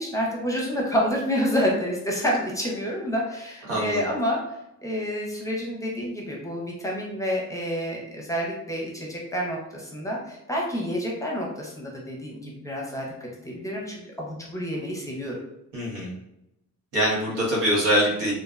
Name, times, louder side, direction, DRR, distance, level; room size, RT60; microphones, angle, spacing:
voice 1, 0.0-4.4 4.8-15.4, equal, 10° left, -2 dB, 0.7 m, -28 dB
voice 2, 3.7-4.0 15.7-16.1 16.9-18.3, equal, 85° right, -4 dB, 1.1 m, -23 dB
2.4 x 2.1 x 2.4 m, 0.85 s
cardioid pair, 90°, 30 cm